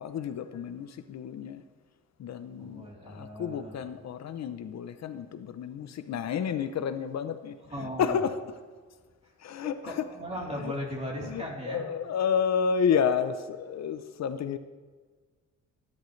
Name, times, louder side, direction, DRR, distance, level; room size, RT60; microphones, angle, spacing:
voice 1, 0.0-1.6 2.2-7.5 8.0-8.4 9.4-10.0 10.6-10.7 11.2-14.6, left 7 dB, 65° left, 10 dB, 0.7 m, -30 dB
voice 2, 2.6-3.8 7.6-8.2 9.6-11.8, equal, 20° right, -3 dB, 3.5 m, -37 dB
17.0 x 11.0 x 3.2 m, 1.5 s
cardioid pair, 120°, 29 cm